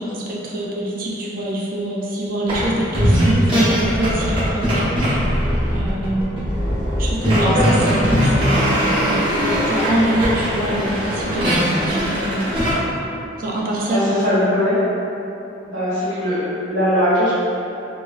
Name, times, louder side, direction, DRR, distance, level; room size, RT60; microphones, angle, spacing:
voice 1, 0.0-5.2 5.7-6.3 7.0-9.2 9.6-12.5 13.4-14.7, right 1 dB, 45° right, -4 dB, 0.4 m, -24 dB
sound 1, 2.5-2.7 2.9-12.8, equal, 25° right, 0.8 m, -20 dB
voice 2, 13.9-14.9 15.6-17.3, equal, 85° right, -13 dB, 1.5 m, -20 dB
2.9 x 2.3 x 2.3 m, 2.9 s
head